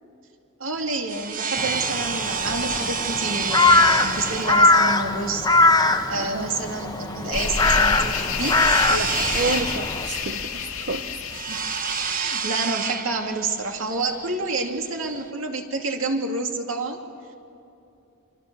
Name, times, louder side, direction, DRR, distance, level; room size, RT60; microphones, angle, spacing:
voice 1, 0.6-5.5 6.1-8.6 11.5-11.6 12.1-17.0, right 3 dB, 80° right, 3 dB, 2.5 m, -28 dB
sound 1, 0.7-15.3, right 6 dB, 45° right, 1.2 m, -30 dB
Crow, 1.6-10.1, left 3 dB, 20° left, 1.0 m, -21 dB
voice 2, 6.1-6.5 8.9-11.1, right 2 dB, 60° right, 6 dB, 0.8 m, -30 dB
sound 2, 7.3-12.5, left 6 dB, 85° left, 1.9 m, -29 dB
29.0 x 24.0 x 6.9 m, 2.7 s
head